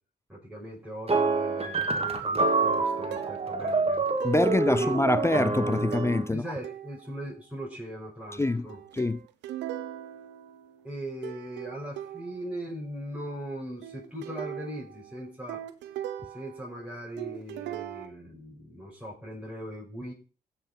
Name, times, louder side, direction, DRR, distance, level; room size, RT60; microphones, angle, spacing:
voice 1, 0.3-4.0 4.7-4.9 6.3-8.8 10.8-15.6 16.3-20.1, right 1 dB, 5° right, 6.1 m, -39 dB
sound 1, 1.1-6.3, right 3 dB, 35° right, 1.9 m, -27 dB
sound 2, 3.1-3.6 4.2-5.2 5.9-6.3 6.6-7.2 8.4-11.0 11.2-12.6 13.8-16.9 17.2-18.1, right 12 dB, 85° right, 0.8 m, -40 dB
voice 2, 4.2-6.4 8.4-8.7 8.9-9.2, left 2 dB, 15° left, 0.5 m, -25 dB
15.5 x 5.7 x 5.3 m
supercardioid pair, 50°, 18 cm